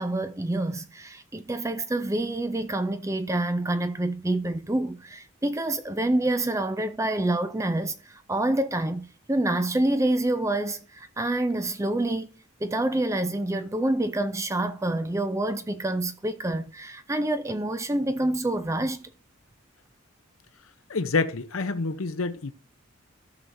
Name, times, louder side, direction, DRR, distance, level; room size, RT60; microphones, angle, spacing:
voice 1, 0.0-12.3 12.6-19.1, right 1 dB, 15° right, 0.4 m, -27 dB
voice 2, 20.9-22.5, left 3 dB, 80° left, 0.7 m, -27 dB
14.5 x 6.2 x 2.7 m
head